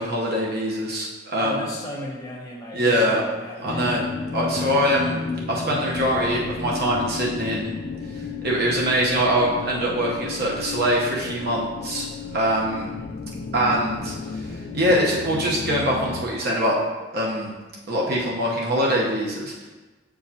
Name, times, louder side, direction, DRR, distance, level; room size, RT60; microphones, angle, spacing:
voice 1, 0.0-1.6 2.7-3.2 3.6-4.0 4.3-5.2 5.5-7.7 8.1-12.1 12.3-12.9 13.5-16.8 17.1-17.5 17.9-19.7, equal, 60° right, -3 dB, 1.0 m, -23 dB
voice 2, 1.3-4.0, left 1 dB, 20° left, -4 dB, 1.3 m, -35 dB
sound 1, 3.6-16.3, left 4 dB, 50° left, 0.4 m, -33 dB
8.0 x 4.7 x 2.8 m, 1.2 s
head